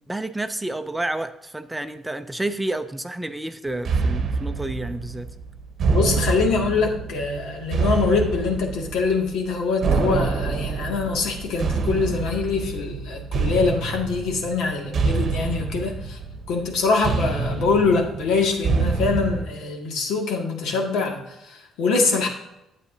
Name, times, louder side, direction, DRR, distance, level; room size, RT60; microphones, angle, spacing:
voice 1, 0.1-5.3, right 2 dB, 5° right, 8 dB, 0.4 m, -30 dB
sound 1, 3.8-19.5, right 4 dB, 45° right, 0.8 m, -26 dB
voice 2, 5.9-16.2 16.5-22.3, left 4 dB, 85° left, 1 dB, 2.1 m, -24 dB
11.5 x 8.2 x 2.7 m, 0.87 s
cardioid pair, 150°, 0 cm